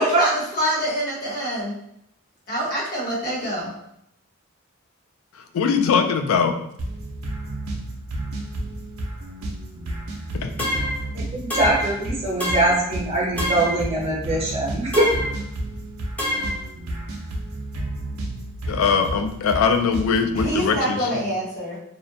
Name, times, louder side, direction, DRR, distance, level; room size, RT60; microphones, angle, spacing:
voice 1, 0.0-1.7 2.5-3.7 20.3-21.8, equal, 45° left, -7 dB, 1.1 m, -25 dB
voice 2, 5.3-6.6 10.3-10.7 18.7-21.2, left 6 dB, 75° left, 6 dB, 0.3 m, -21 dB
sound 1, 6.8-20.8, right 1 dB, 85° right, 0.5 m, -32 dB
sound 2, 10.6-11.0 11.5-12.0 12.4-12.9 13.4-13.8 14.9-15.4 16.2-16.6, left 1 dB, 5° left, 0.5 m, -26 dB
voice 3, 11.1-15.1, right 1 dB, 30° right, -4 dB, 0.8 m, -23 dB
2.5 x 2.1 x 2.6 m, 0.74 s
head